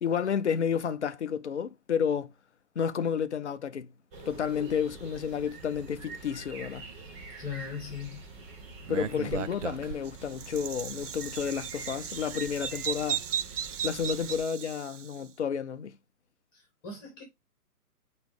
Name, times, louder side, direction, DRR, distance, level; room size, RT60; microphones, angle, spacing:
voice 1, 0.0-2.3 2.8-3.9 4.3-6.8 8.9-13.2 13.8-15.9, left 7 dB, 50° left, 0.7 m, -31 dB
sound 1, 4.1-14.4, right 3 dB, 15° right, 0.9 m, -46 dB
voice 2, 7.4-8.3 9.1-9.4 16.5-17.2, left 6 dB, 20° left, 2.8 m, -39 dB
Bird vocalization bird call bird song, 8.9-15.1, right 9 dB, 55° right, 0.5 m, -36 dB
8.7 x 3.2 x 3.4 m
figure-of-eight pair, 130°, 46 cm